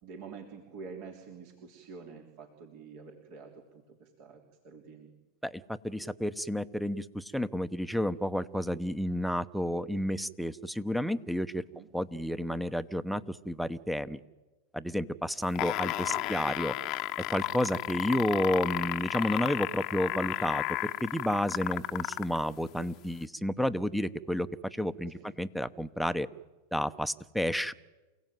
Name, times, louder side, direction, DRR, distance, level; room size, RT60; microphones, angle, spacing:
voice 1, 0.0-5.1 11.6-11.9 16.1-16.3 25.1-25.3, right 5 dB, 55° right, 2 dB, 3.4 m, -48 dB
voice 2, 5.4-11.6 11.9-14.2 14.7-16.7 17.3-26.3 26.7-27.7, equal, ahead, 15 dB, 1.0 m, -31 dB
sound 1, 15.4-22.4 23.2-23.3, left 17 dB, 45° left, 0.9 m, -33 dB
28.5 x 16.5 x 9.3 m, 1.2 s
hypercardioid pair, 100°, 0 cm